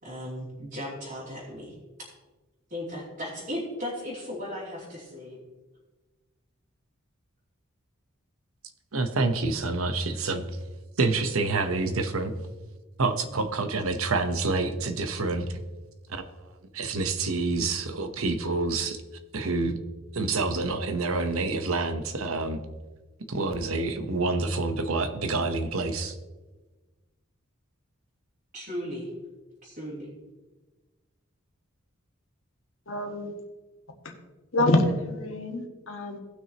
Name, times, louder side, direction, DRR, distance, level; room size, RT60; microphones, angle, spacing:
voice 1, 0.0-1.8 2.7-5.4 28.5-29.1 29.6-30.1, equal, 45° right, -8 dB, 2.9 m, -36 dB
voice 2, 8.9-10.4 11.0-12.3 13.0-15.6 16.1-16.2 16.7-19.0 19.3-19.8 20.1-22.6 23.3-26.1, right 3 dB, 80° right, 8 dB, 0.9 m, -27 dB
voice 3, 32.9-33.3 34.5-36.2, left 1 dB, 70° left, 3 dB, 1.5 m, -26 dB
18.5 x 6.2 x 2.9 m, 1.2 s
head